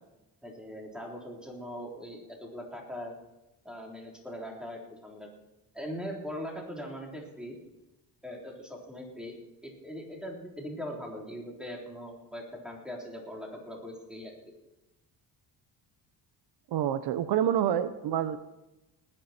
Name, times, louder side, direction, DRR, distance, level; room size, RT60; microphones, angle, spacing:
voice 1, 0.4-3.1 3.6-5.3 5.7-7.6 8.2-9.4 9.6-14.3, equal, ahead, -1 dB, 3.6 m, -41 dB
voice 2, 16.7-18.4, right 10 dB, 65° right, 12 dB, 0.8 m, -27 dB
19.5 x 9.9 x 4.4 m, 0.99 s
cardioid pair, 115°, 41 cm